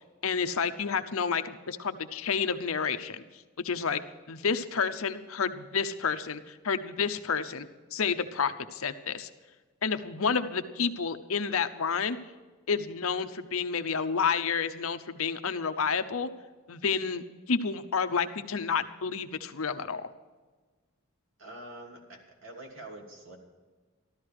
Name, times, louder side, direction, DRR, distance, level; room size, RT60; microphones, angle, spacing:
voice 1, 0.2-3.2 3.6-4.0 4.3-9.3 9.8-12.2 12.7-16.3 16.7-20.0, left 6 dB, 70° left, 10 dB, 0.8 m, -30 dB
voice 2, 21.4-23.4, right 1 dB, 65° right, 1 dB, 2.9 m, -45 dB
14.0 x 13.0 x 4.9 m, 1.4 s
head